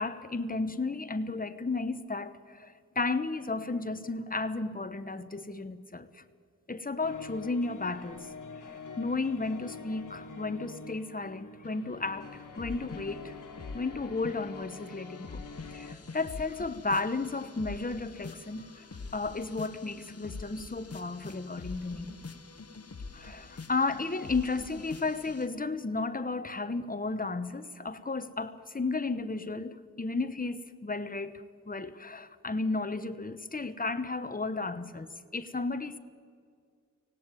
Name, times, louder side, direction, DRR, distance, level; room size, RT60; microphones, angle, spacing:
voice 1, 0.0-6.2 6.7-8.3 8.6-13.3 13.7-15.4 15.7-18.9 19.1-22.2 23.1-36.0, left 3 dB, 30° left, 1.1 m, -33 dB
sound 1, 7.0-15.9, left 4 dB, 85° left, 1.6 m, -46 dB
sound 2, 11.6-13.3 13.6-25.5, left 4 dB, 50° left, 1.4 m, -45 dB
24.5 x 17.5 x 9.1 m
wide cardioid pair, 70°, 31 cm